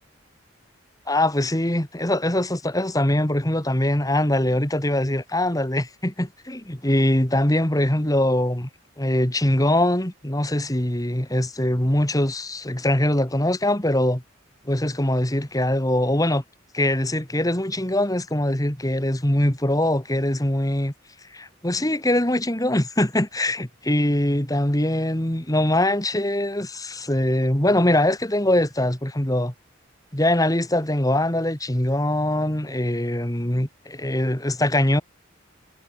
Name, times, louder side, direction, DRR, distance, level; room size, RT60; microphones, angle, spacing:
voice 1, 1.1-8.7 9.0-14.2 14.7-16.4 16.7-20.9 21.3-29.5 30.1-35.0, left 1 dB, 20° left, 2.3 m, -22 dB
head